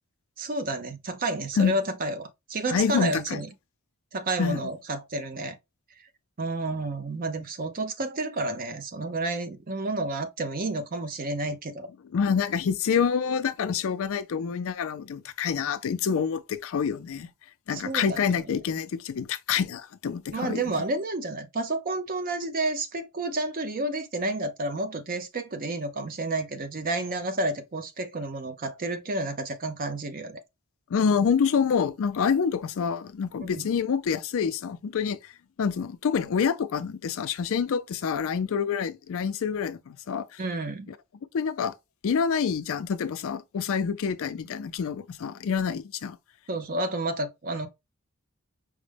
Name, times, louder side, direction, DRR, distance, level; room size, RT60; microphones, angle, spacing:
voice 1, 0.4-3.5 4.1-5.6 6.4-11.9 17.7-18.5 20.3-30.4 33.4-33.6 40.4-40.9 46.5-47.7, right 2 dB, 40° right, 0.6 m, -30 dB
voice 2, 2.7-3.4 4.4-4.6 12.1-17.3 17.7-20.7 30.9-35.3 35.6-40.4 41.3-41.7 42.0-46.2, left 6 dB, 65° left, 0.4 m, -27 dB
4.9 x 2.1 x 3.3 m
head